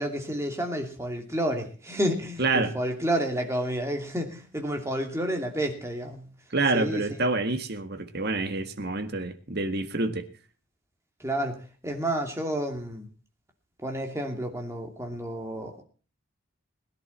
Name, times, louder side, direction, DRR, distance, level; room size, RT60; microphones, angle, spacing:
voice 1, 0.0-6.3 6.7-7.0 11.2-13.1 13.8-15.8, right 1 dB, 15° right, 2.7 m, -30 dB
voice 2, 2.4-2.7 6.5-10.2, right 3 dB, 50° right, 1.8 m, -27 dB
20.5 x 11.0 x 4.3 m
head